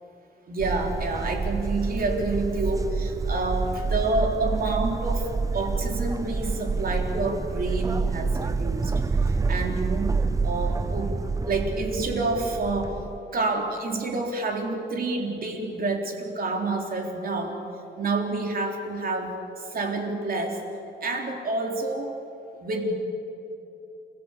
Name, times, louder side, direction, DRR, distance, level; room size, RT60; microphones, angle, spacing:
voice 1, 0.5-8.9 9.2-10.2 10.4-13.0 13.3-17.7 18.0-20.6 21.0-22.2 22.6-22.9, right 3 dB, 55° right, 2 dB, 3.8 m, -28 dB
sound 1, 0.6-13.2, right 4 dB, 20° right, 0.5 m, -28 dB
29.0 x 17.5 x 8.4 m, 3.0 s
wide cardioid pair, 150°, 18 cm